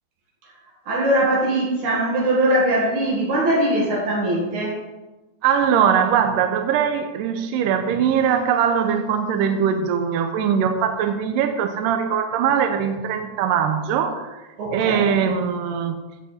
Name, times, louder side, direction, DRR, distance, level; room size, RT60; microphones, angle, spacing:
voice 1, 0.9-4.8 14.6-15.2, right 1 dB, 65° right, -3 dB, 3.1 m, -21 dB
voice 2, 5.4-14.4 14.7-16.0, right 7 dB, 85° right, 6 dB, 2.4 m, -21 dB
16.0 x 5.9 x 4.2 m, 1.1 s
omnidirectional pair, 3.8 m